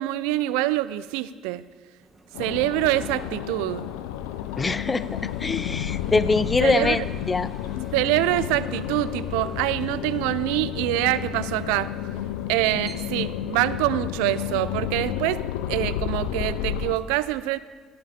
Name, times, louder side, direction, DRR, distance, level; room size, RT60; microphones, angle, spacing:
voice 1, 0.0-1.7 2.4-3.9 6.6-7.0 7.9-11.9 12.5-15.4 15.7-17.6, right 16 dB, 85° right, 16 dB, 0.4 m, -25 dB
sound 1, 2.0-13.6, right 1 dB, 15° right, 2.0 m, -50 dB
sound 2, 2.3-17.0, left 11 dB, 85° left, 0.5 m, -31 dB
voice 2, 4.6-7.0 7.3-7.5, left 3 dB, 25° left, 16 dB, 0.6 m, -23 dB
16.0 x 10.0 x 4.3 m, 1.6 s
supercardioid pair, 80°, 0 cm